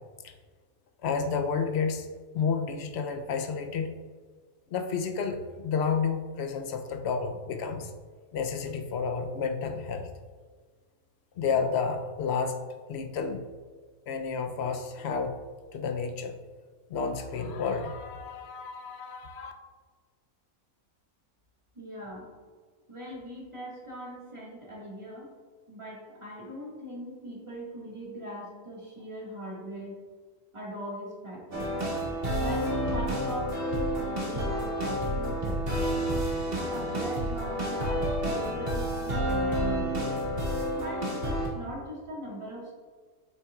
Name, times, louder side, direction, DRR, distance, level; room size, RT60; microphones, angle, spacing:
voice 1, 1.0-2.1 2.3-3.9 4.7-7.9 8.3-10.1 11.4-12.6 12.9-13.4 14.1-15.4 15.7-16.4 16.9-19.5, left 5 dB, 60° left, 5 dB, 0.7 m, -31 dB
voice 2, 21.7-22.3 22.9-25.3 25.7-30.0 30.5-31.8 32.4-35.9 36.7-40.1 40.7-42.7, right 1 dB, 20° right, -5 dB, 1.6 m, -40 dB
sound 1, 31.5-41.5, equal, 40° right, 1.6 m, -29 dB
7.8 x 5.8 x 2.3 m, 1.5 s
omnidirectional pair, 1.6 m